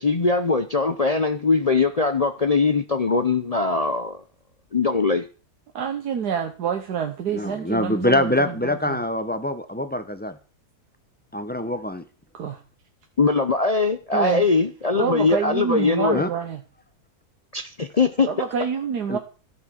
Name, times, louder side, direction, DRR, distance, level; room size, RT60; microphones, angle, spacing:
voice 1, 0.0-4.2 4.7-5.3 13.2-16.2 17.5-18.3, left 4 dB, 45° left, 0.4 m, -21 dB
voice 2, 5.8-9.0 12.3-12.6 14.1-14.5 15.0-16.6 18.3-19.2, right 7 dB, 85° right, 1.6 m, -27 dB
voice 3, 7.3-10.3 11.3-12.0 16.1-16.3 19.1-19.2, left 1 dB, 10° left, 0.8 m, -24 dB
13.0 x 7.3 x 6.3 m
omnidirectional pair, 1.7 m